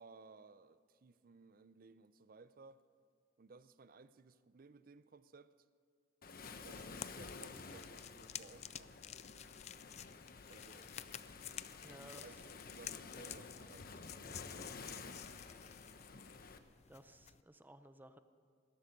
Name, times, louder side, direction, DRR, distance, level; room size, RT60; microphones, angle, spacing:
voice 1, 0.0-2.8 3.4-5.5 6.6-8.9 10.5-10.9 11.8-12.4 12.7-15.4, right 4 dB, 50° right, 0.5 m, -60 dB
Waves surf, 6.2-16.6, left 4 dB, 55° left, 0.9 m, -52 dB
sound 1, 6.4-17.4, left 10 dB, 35° left, 0.4 m, -52 dB
voice 2, 11.8-12.2 16.9-18.2, right 1 dB, 10° right, 0.6 m, -57 dB
19.5 x 13.0 x 5.3 m
head